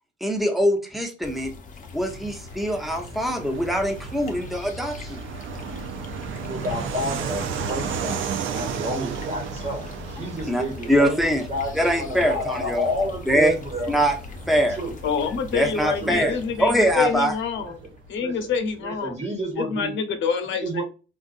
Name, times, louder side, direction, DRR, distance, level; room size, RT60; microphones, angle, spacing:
voice 1, 0.2-1.5 1.9-5.2 10.4-10.6 10.9-11.5 11.7-12.9 13.3-13.5 13.9-14.2 14.5-14.8 15.5-17.3, equal, ahead, 3 dB, 0.9 m, -23 dB
sound 1, 1.2-19.4, left 4 dB, 40° left, 0.7 m, -41 dB
Fixed-wing aircraft airplane, 1.9-18.1, right 7 dB, 75° right, 0.5 m, -35 dB
voice 2, 6.4-8.2 8.5-13.9 14.5-14.9 15.2-15.3 15.6-16.3 17.6-17.7 18.2-18.3 18.8-20.0 20.6-20.8, equal, 30° right, 1 dB, 1.3 m, -30 dB
voice 3, 15.0-17.8 18.1-19.2 19.5-20.8, left 6 dB, 75° left, 7 dB, 0.9 m, -26 dB
3.7 x 2.5 x 2.4 m, 0.32 s
cardioid pair, 90°, 20 cm